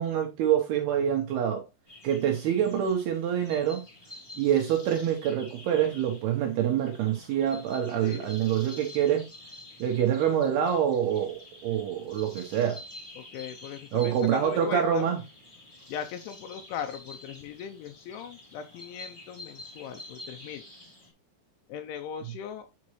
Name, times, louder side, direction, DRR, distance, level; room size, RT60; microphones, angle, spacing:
voice 1, 0.0-1.6 2.0-3.8 4.4-9.2 9.8-12.8 13.9-15.2, right 9 dB, 75° right, 2.4 m, -26 dB
sound 1, 1.9-21.1, left 1 dB, 15° left, 1.3 m, -49 dB
voice 2, 2.2-2.6 8.0-8.3 13.2-15.1 15.9-20.6 21.7-22.7, left 8 dB, 80° left, 3.0 m, -39 dB
9.6 x 5.1 x 3.1 m
omnidirectional pair, 5.6 m